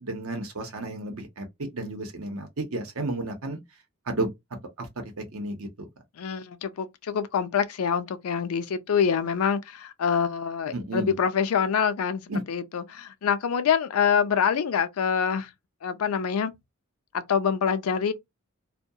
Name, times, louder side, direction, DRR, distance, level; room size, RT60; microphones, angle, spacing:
voice 1, 0.0-1.5 1.7-3.6 4.1-4.3 4.8-5.9 10.7-11.1 12.3-12.4, right 2 dB, 80° right, 0.8 m, -32 dB
voice 2, 6.2-12.2 12.5-15.5 15.8-16.5 17.1-18.1, left 7 dB, 85° left, 0.4 m, -25 dB
2.3 x 2.2 x 2.7 m
head